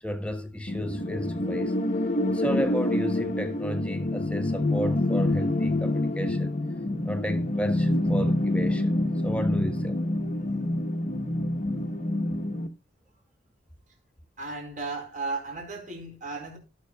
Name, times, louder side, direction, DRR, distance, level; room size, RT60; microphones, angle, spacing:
voice 1, 0.0-1.7 2.3-6.6 7.0-8.9 9.2-10.1, equal, 5° left, 1.4 m, -33 dB
sound 1, 0.7-12.7, left 1 dB, 40° left, 1.2 m, -27 dB
voice 2, 14.4-16.6, right 3 dB, 45° right, 4.6 m, -35 dB
17.5 x 6.5 x 2.3 m
head